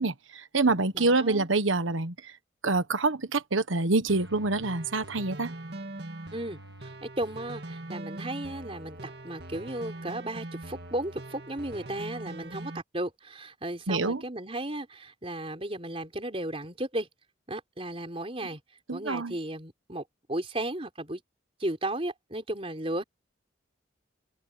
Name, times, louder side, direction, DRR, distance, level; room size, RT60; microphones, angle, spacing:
voice 1, 0.0-2.1 2.6-5.5 13.9-14.2 18.9-19.4, right 3 dB, 85° right, 1.4 m, -26 dB
voice 2, 0.9-1.5 6.3-17.1 17.5-18.6 18.9-21.2 21.6-23.0, right 1 dB, 30° right, 4.1 m, -35 dB
sound 1, 4.1-12.8, right 2 dB, 55° right, 2.3 m, -42 dB
head